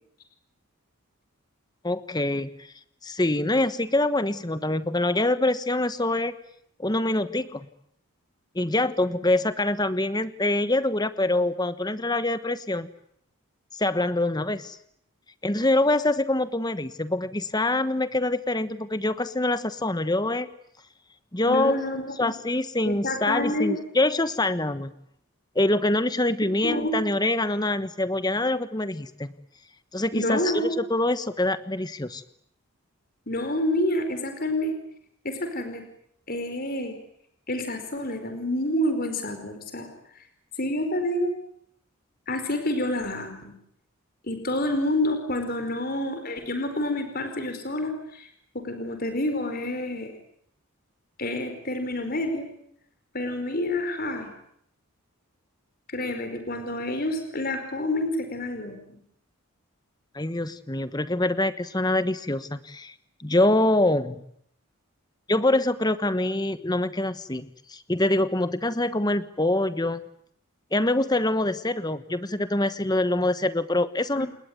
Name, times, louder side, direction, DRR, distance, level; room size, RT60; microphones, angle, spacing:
voice 1, 1.8-2.7 3.0-6.4 6.8-7.7 8.5-12.9 13.7-14.8 15.4-20.5 21.3-21.7 22.2-24.9 25.5-29.3 29.9-32.2 60.1-62.9 63.2-64.2 65.3-70.0 70.7-74.3, left 2 dB, 20° left, 13 dB, 1.2 m, -25 dB
voice 2, 21.4-22.3 22.9-23.7 26.6-27.0 30.1-30.8 33.3-34.8 35.2-35.8 36.3-37.0 37.5-39.9 40.6-41.3 42.3-43.5 44.2-48.3 48.5-50.1 51.2-52.5 53.1-54.3 55.9-59.0 74.2-74.3, left 1 dB, 40° left, 7 dB, 4.7 m, -28 dB
29.0 x 20.5 x 9.5 m, 0.71 s
head